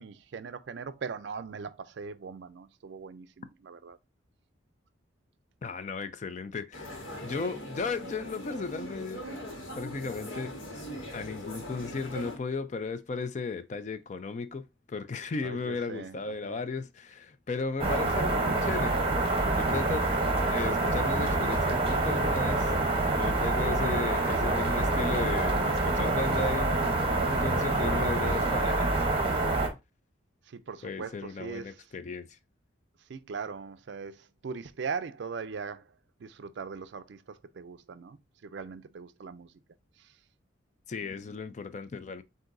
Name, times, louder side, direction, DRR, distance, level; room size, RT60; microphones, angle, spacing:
voice 1, 0.0-4.0 15.4-16.2 16.4-16.6 30.5-31.7 33.1-35.8 36.2-37.2 37.6-38.2 38.4-39.5, right 5 dB, 60° right, 0.4 m, -40 dB
voice 2, 5.6-9.3 9.8-10.5 11.1-20.1 20.5-22.8 23.2-28.9 30.8-32.4 40.9-42.2, left 4 dB, 35° left, 0.3 m, -35 dB
sound 1, 6.7-12.4, equal, 80° left, 1.5 m, -41 dB
sound 2, 17.8-29.7, right 2 dB, 30° right, 0.8 m, -26 dB
7.7 x 2.6 x 2.5 m
head